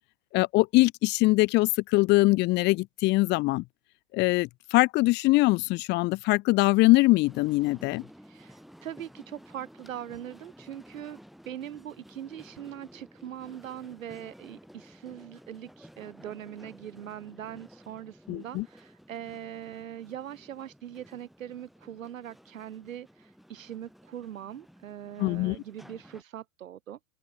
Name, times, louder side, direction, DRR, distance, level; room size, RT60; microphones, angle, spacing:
voice 1, 0.3-3.6 4.1-8.0 18.3-18.6 25.2-25.6, left 21 dB, 30° left, 0.5 m, -23 dB
sound 1, 7.2-26.2, equal, ahead, 7.7 m, -53 dB
voice 2, 8.2-11.2 11.5-27.0, right 10 dB, 85° right, 2.1 m, -41 dB
open air
hypercardioid pair, 115°, 39 cm